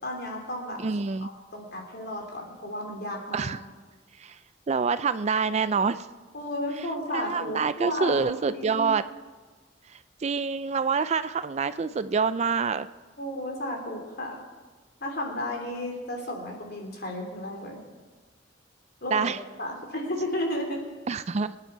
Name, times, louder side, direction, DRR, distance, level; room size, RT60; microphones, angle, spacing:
voice 1, 0.0-0.8 1.2-3.5 6.3-8.9 13.2-14.4 15.0-17.8 19.0-20.8, left 1 dB, 55° left, 1 dB, 3.3 m, -33 dB
voice 2, 0.8-1.3 3.3-3.6 4.2-4.4 4.7-6.1 7.1-9.0 10.2-12.9 19.1-19.4 21.1-21.6, right 5 dB, 35° right, 13 dB, 0.4 m, -26 dB
25.0 x 10.0 x 4.6 m, 1.4 s
head